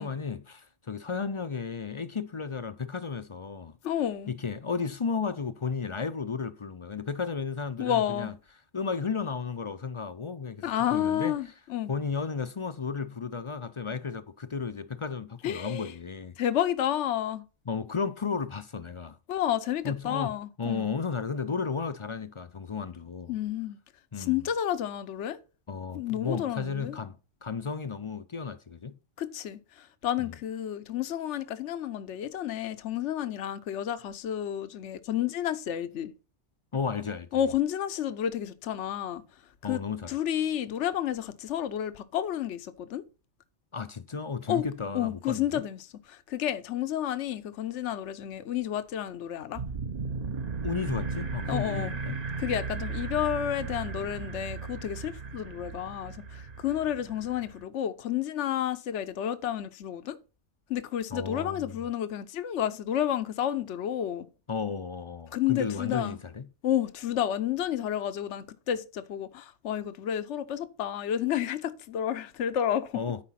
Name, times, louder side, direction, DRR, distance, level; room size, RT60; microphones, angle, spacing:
voice 1, 0.0-3.8 4.3-8.3 8.7-11.4 11.9-16.4 17.7-19.2 19.8-23.4 24.1-24.5 25.7-29.0 30.2-30.3 36.7-37.4 39.6-40.2 43.7-45.6 50.6-52.2 61.1-61.8 64.5-66.5 72.9-73.2, left 5 dB, 40° left, 0.5 m, -34 dB
voice 2, 3.8-4.3 7.8-8.3 10.6-11.9 15.4-15.9 16.4-17.4 19.3-20.9 23.3-23.8 24.2-25.4 25.9-27.0 29.2-36.1 37.3-39.2 39.6-39.8 40.1-43.0 44.5-44.7 44.9-49.6 51.5-51.9 52.4-60.2 60.7-64.3 65.3-66.2 66.6-73.0, left 10 dB, 80° left, 1.1 m, -31 dB
sound 1, 49.6-57.7, right 4 dB, 40° right, 0.7 m, -36 dB
13.0 x 5.0 x 5.7 m
omnidirectional pair, 1.2 m